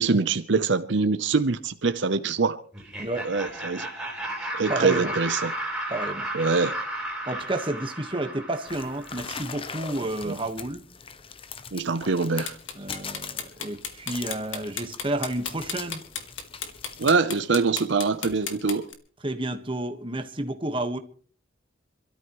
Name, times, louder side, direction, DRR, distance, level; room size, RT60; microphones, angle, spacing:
voice 1, 0.0-2.6 3.2-3.9 4.5-5.5 6.3-6.7 10.2-10.4 11.7-12.6 17.0-18.9, right 4 dB, 65° right, 0.7 m, -24 dB
Laughter, 2.7-9.5, right 1 dB, 5° right, 4.3 m, -34 dB
voice 2, 3.0-3.3 4.7-5.1 5.9-6.3 7.2-10.8 12.7-16.0 19.2-21.0, right 1 dB, 25° right, 1.4 m, -31 dB
sound 1, 8.7-17.1, left 6 dB, 30° left, 0.8 m, -41 dB
sound 2, 12.4-18.9, left 7 dB, 75° left, 2.3 m, -34 dB
27.0 x 13.0 x 3.1 m
head